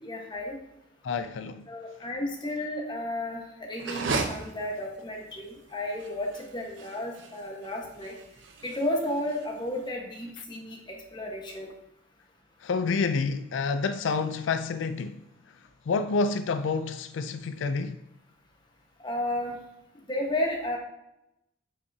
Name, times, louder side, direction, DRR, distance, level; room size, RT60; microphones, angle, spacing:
voice 1, 0.0-0.6 1.7-3.4 3.7-8.1 8.6-11.7 19.0-19.6 20.1-20.8, left 1 dB, 25° left, 1.3 m, -32 dB
voice 2, 1.0-1.7 10.4-10.5 12.6-15.2 15.9-18.0, left 4 dB, 80° left, 0.4 m, -28 dB
sound 1, 3.7-9.9, right 3 dB, 80° right, 0.8 m, -36 dB
9.0 x 5.6 x 2.8 m
head